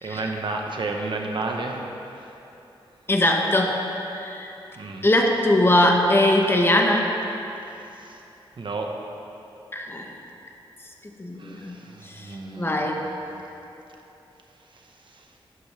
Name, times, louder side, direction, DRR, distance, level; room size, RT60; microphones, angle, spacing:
voice 1, 0.0-1.8 2.2-2.3 4.8-5.1 7.9-8.2 8.6-8.9 11.4-13.1 14.7-15.3, right 3 dB, 60° right, 1 dB, 1.2 m, -32 dB
voice 2, 3.1-3.8 4.1-4.5 5.0-7.1 9.7-10.1 11.2-11.7 12.1-12.3 12.6-13.0, left 1 dB, 25° left, 1 dB, 1.1 m, -21 dB
11.5 x 11.0 x 3.5 m, 2.9 s
wide cardioid pair, 90°, 9 cm